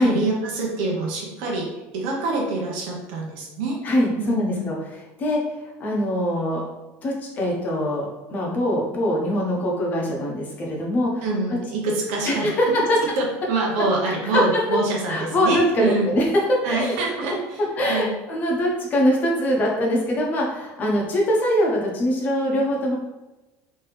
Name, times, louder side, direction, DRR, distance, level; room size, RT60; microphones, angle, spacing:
voice 1, 0.0-1.7 1.9-3.8 4.2-4.7 11.2-12.5 13.2-16.1 16.6-17.6 17.9-18.1, right 2 dB, 75° right, -1 dB, 0.8 m, -26 dB
voice 2, 3.8-6.6 7.0-11.2 12.2-13.0 14.1-14.4 15.1-16.9 17.8-23.0, equal, 30° left, -2 dB, 0.9 m, -23 dB
3.3 x 2.9 x 3.3 m, 1.1 s
cardioid pair, 160°, 6 cm